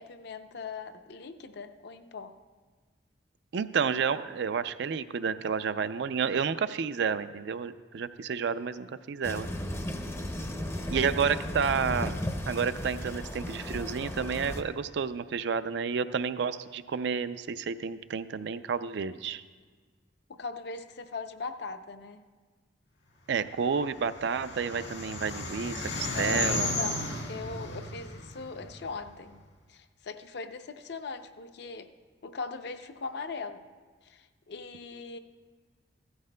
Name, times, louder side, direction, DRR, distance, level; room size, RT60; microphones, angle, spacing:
voice 1, 0.0-2.3 10.8-11.4 20.3-22.2 26.1-29.4 29.7-31.9 32.2-33.6 34.0-35.2, left 4 dB, 60° left, 9 dB, 0.5 m, -40 dB
voice 2, 3.5-9.5 10.9-12.2 12.5-19.4 23.3-26.7, right 6 dB, 65° right, 13 dB, 0.4 m, -30 dB
sound 1, 9.2-14.6, left 1 dB, 15° left, 0.5 m, -35 dB
sound 2, 23.7-29.1, left 2 dB, 75° left, 1.7 m, -34 dB
15.5 x 13.0 x 2.2 m, 1.4 s
head